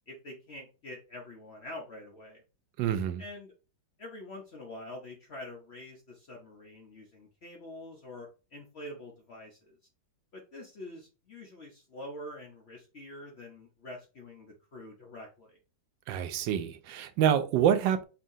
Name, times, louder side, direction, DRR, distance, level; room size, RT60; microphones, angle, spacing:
voice 1, 0.1-2.4 3.2-3.5 4.0-9.8 10.3-15.6, left 1 dB, 50° left, 0.8 m, -46 dB
voice 2, 2.8-3.2 16.1-18.0, right 9 dB, 80° right, 1.3 m, -27 dB
5.5 x 2.8 x 2.6 m
omnidirectional pair, 2.0 m